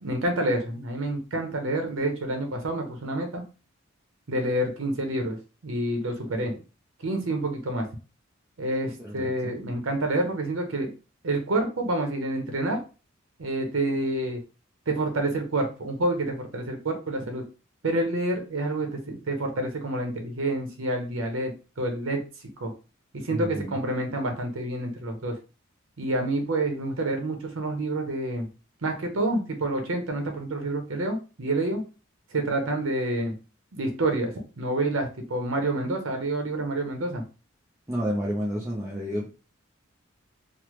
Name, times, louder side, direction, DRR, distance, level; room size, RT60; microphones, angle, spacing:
voice 1, 0.0-3.4 4.3-5.4 5.6-6.5 7.0-7.9 8.6-10.9 11.2-12.8 13.4-14.4 14.9-17.4 17.8-22.2 22.6-22.7 23.1-25.4 26.0-28.5 28.8-31.8 32.3-33.4 33.7-37.2, right 1 dB, 80° right, 4 dB, 0.7 m, -28 dB
voice 2, 9.0-9.6 23.3-23.8 37.9-39.3, equal, 15° right, -4 dB, 0.5 m, -30 dB
3.2 x 2.0 x 3.0 m, 0.33 s
head